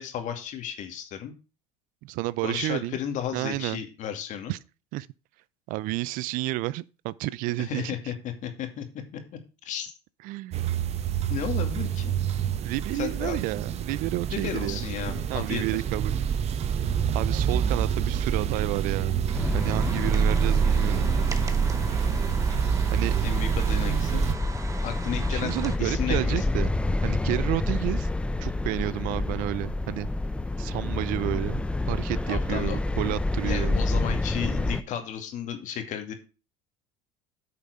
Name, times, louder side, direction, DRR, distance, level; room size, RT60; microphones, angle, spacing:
voice 1, 0.0-1.3 2.4-4.5 7.6-8.9 9.1-9.2 9.6-9.9 11.3-12.1 12.9-13.4 14.3-15.8 23.2-24.2 24.8-26.5 32.3-32.8 33.4-36.1, left 9 dB, 55° left, 2.3 m, -33 dB
voice 2, 2.0-3.0 3.3-3.8 4.5-4.6 4.9-5.1 5.7-7.9 10.2-10.6 12.6-14.8 15.3-16.2 17.1-19.3 19.5-21.1 22.9-23.1 25.3-26.8 27.0-28.1 28.4-30.1 30.6-33.8, right 18 dB, 60° right, 0.5 m, -31 dB
sound 1, 10.5-24.3, right 8 dB, 45° right, 0.9 m, -27 dB
sound 2, 19.3-34.8, left 2 dB, 5° left, 0.5 m, -29 dB
sound 3, 19.3-25.8, right 3 dB, 20° right, 1.1 m, -40 dB
9.6 x 5.8 x 5.0 m
supercardioid pair, 95°, 16 cm